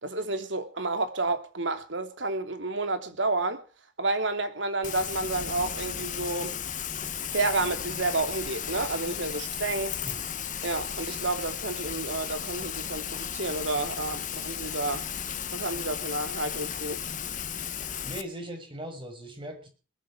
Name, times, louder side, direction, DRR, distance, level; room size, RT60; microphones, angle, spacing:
voice 1, 0.0-3.6 4.0-6.6 7.3-10.0 10.6-15.0 15.5-17.0, right 2 dB, 75° right, 3.0 m, -30 dB
Rain, 4.8-18.2, left 8 dB, 45° left, 1.5 m, -35 dB
voice 2, 17.8-19.7, right 1 dB, 25° right, 6.1 m, -39 dB
21.0 x 13.0 x 4.9 m
head